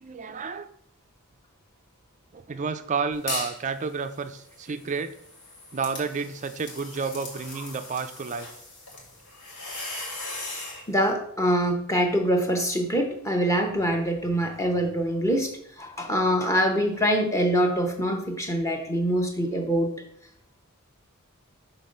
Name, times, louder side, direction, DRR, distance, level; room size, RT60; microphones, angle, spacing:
voice 1, 0.0-0.7 2.3-5.2 5.7-8.5, right 5 dB, 35° right, 9 dB, 0.4 m, -31 dB
sound 1, 3.3-3.6 4.0-10.8, left 2 dB, 75° left, 2.2 m, -38 dB
voice 2, 10.9-15.5 15.8-19.9, equal, 15° left, 3 dB, 0.9 m, -24 dB
6.0 x 3.9 x 5.2 m, 0.70 s
head